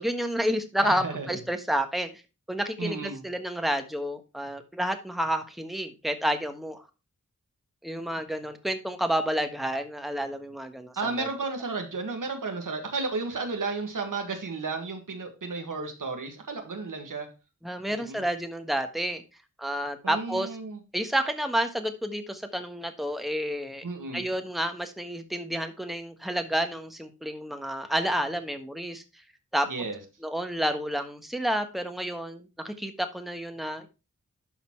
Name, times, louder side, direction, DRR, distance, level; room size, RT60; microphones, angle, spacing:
voice 1, 0.0-2.1 2.5-6.8 7.8-11.3 17.6-19.2 19.6-20.5 20.9-23.9 24.1-29.0 29.5-29.7 30.2-33.9, equal, ahead, 7 dB, 1.4 m, -30 dB
voice 2, 0.8-1.4 2.8-3.2 11.0-17.3 17.9-18.2 20.0-20.8 23.8-24.2 29.7-30.0, right 4 dB, 85° right, 5 dB, 1.8 m, -33 dB
12.0 x 4.1 x 4.6 m, 0.30 s
wide cardioid pair, 55°, 31 cm